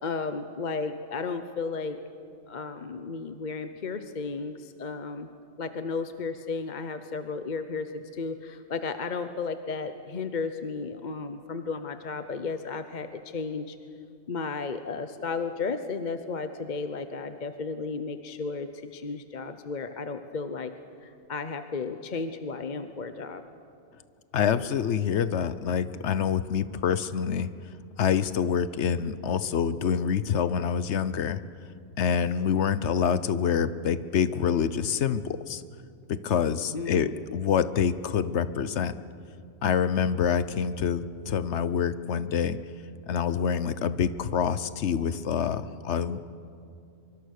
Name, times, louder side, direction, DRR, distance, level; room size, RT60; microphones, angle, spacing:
voice 1, 0.0-2.0 2.5-5.3 5.6-13.8 14.3-20.7 21.0-23.4 36.7-37.2, left 4 dB, 45° left, 9 dB, 0.9 m, -34 dB
voice 2, 24.3-27.5 28.0-31.4 32.0-35.6 36.1-39.0 39.6-42.6 43.1-46.4, left 7 dB, 70° left, 14 dB, 1.1 m, -26 dB
24.5 x 24.0 x 6.6 m, 2.5 s
omnidirectional pair, 1.2 m